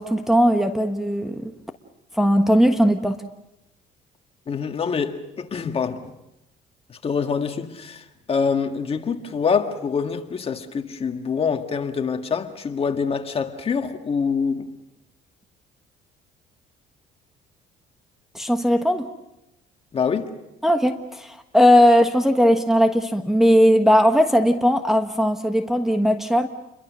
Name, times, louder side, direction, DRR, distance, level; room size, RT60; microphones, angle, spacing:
voice 1, 0.0-1.5 2.2-3.2 18.3-19.1 20.6-26.5, equal, ahead, 1.3 m, -18 dB
voice 2, 4.5-6.1 6.9-14.7 19.9-20.3, left 6 dB, 35° left, 1.9 m, -25 dB
29.0 x 22.5 x 6.3 m
cardioid pair, 110°, 17 cm